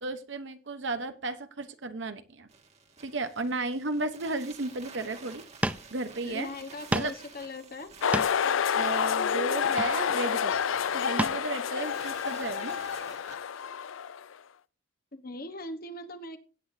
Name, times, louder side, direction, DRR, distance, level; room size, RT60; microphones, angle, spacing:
voice 1, 0.0-2.5 3.0-5.4 5.9-6.5 6.9-7.1 8.7-12.8, right 2 dB, 60° right, 10 dB, 0.9 m, -34 dB
sound 1, 2.5-13.4, right 4 dB, 35° right, 1.8 m, -51 dB
sound 2, 5.3-5.4 5.6-5.9 6.3-6.4 6.9-7.2 7.9-8.5 9.6-10.2 11.2-11.4 11.9-12.0, right 1 dB, 5° right, 0.4 m, -31 dB
voice 2, 6.2-7.9 15.1-16.4, left 2 dB, 45° left, 8 dB, 1.2 m, -40 dB
sound 3, 8.0-14.3, left 7 dB, 75° left, 0.5 m, -29 dB
17.0 x 8.5 x 2.7 m, 0.35 s
head